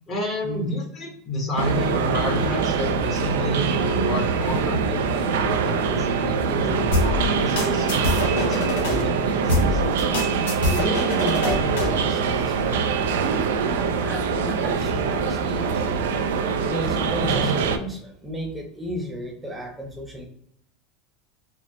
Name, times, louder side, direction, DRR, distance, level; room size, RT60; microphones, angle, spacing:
voice 1, 0.1-9.8 17.2-17.5, left 1 dB, 35° left, 0 dB, 1.3 m, -30 dB
sound 1, 1.6-17.8, right 5 dB, 80° right, 0.4 m, -24 dB
sound 2, 6.9-9.0 9.5-12.0, left 2 dB, 80° left, 1.0 m, -24 dB
voice 2, 10.6-13.0 13.6-16.0 16.6-20.2, equal, 10° right, 1 dB, 0.9 m, -33 dB
4.3 x 2.0 x 3.0 m, 0.69 s
hypercardioid pair, 100°, 0 cm